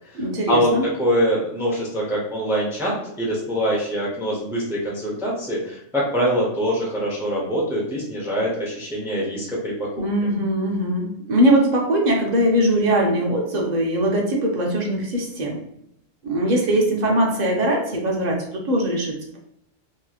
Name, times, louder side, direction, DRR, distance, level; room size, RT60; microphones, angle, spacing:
voice 1, 0.1-0.8 10.0-15.6 16.2-19.4, right 1 dB, 45° right, -1 dB, 0.6 m, -21 dB
voice 2, 1.0-10.0, equal, 5° right, -5 dB, 0.6 m, -24 dB
3.0 x 2.7 x 2.4 m, 0.75 s
omnidirectional pair, 1.3 m